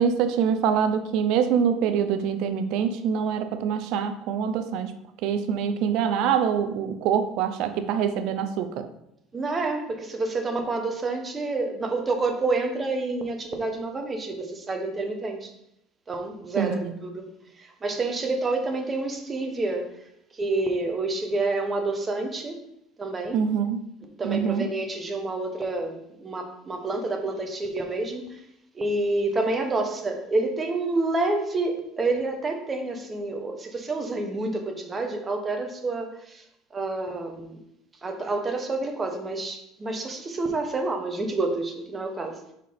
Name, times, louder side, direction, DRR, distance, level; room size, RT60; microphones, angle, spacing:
voice 1, 0.0-4.9 5.2-8.8 16.6-16.9 23.3-23.8 24.2-24.6, right 7 dB, 70° right, 10 dB, 0.6 m, -25 dB
voice 2, 9.3-15.5 16.1-17.3 17.6-19.9 20.3-22.6 23.0-23.5 24.2-28.4 28.7-36.4 36.7-37.6 38.0-42.4, right 2 dB, 20° right, 3 dB, 1.1 m, -28 dB
5.0 x 4.4 x 5.1 m, 0.78 s
cardioid pair, 125°, 0 cm